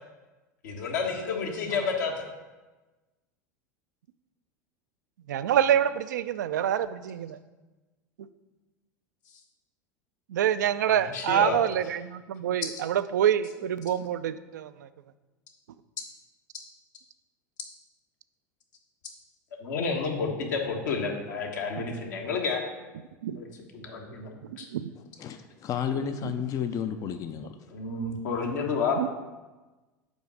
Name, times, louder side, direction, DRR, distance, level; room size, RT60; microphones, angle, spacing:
voice 1, 0.6-2.3 10.9-11.6 19.6-22.6 23.4-23.5 23.7-24.7 27.7-29.0, left 4 dB, 70° left, 1 dB, 1.4 m, -30 dB
voice 2, 5.3-7.4 10.3-14.9 21.8-21.9 23.2-23.4 24.5-24.9 26.2-26.3 29.0-29.1, right 10 dB, 75° right, 13 dB, 0.4 m, -26 dB
voice 3, 25.0-27.7, left 8 dB, 35° left, 9 dB, 0.5 m, -32 dB
5.3 x 4.6 x 6.3 m, 1.2 s
hypercardioid pair, 80°, 10 cm